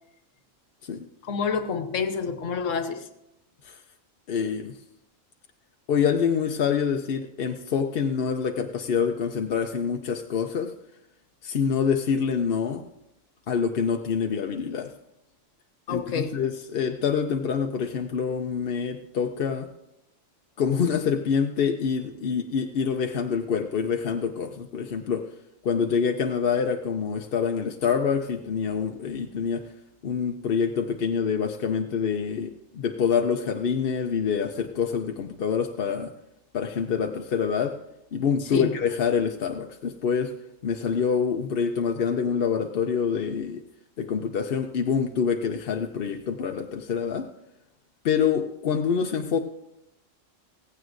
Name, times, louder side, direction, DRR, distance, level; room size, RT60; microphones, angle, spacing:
voice 1, 1.2-3.1 15.9-16.3 38.5-38.7, left 6 dB, 80° left, 9 dB, 1.3 m, -28 dB
voice 2, 4.3-4.7 5.9-10.7 11.4-12.8 13.5-14.9 15.9-19.7 20.6-25.3 25.6-29.7 30.0-36.1 36.5-37.8 38.1-40.4 40.6-43.6 44.0-47.3 48.0-49.4, left 6 dB, 55° left, 4 dB, 0.8 m, -26 dB
17.0 x 15.5 x 2.5 m, 0.86 s
omnidirectional pair, 1.3 m